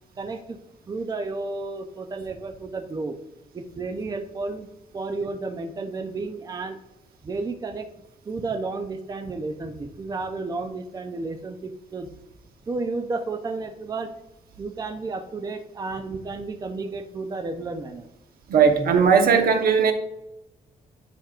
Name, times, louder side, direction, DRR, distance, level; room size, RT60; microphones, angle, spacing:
voice 1, 0.2-0.6 0.9-3.2 3.5-4.7 4.9-6.8 7.2-7.9 8.3-12.1 12.7-14.1 14.6-18.1, right 3 dB, 25° right, 5 dB, 0.6 m, -32 dB
voice 2, 18.5-19.9, right 6 dB, 75° right, 4 dB, 1.1 m, -18 dB
10.5 x 5.1 x 2.5 m, 0.91 s
wide cardioid pair, 140°, 15 cm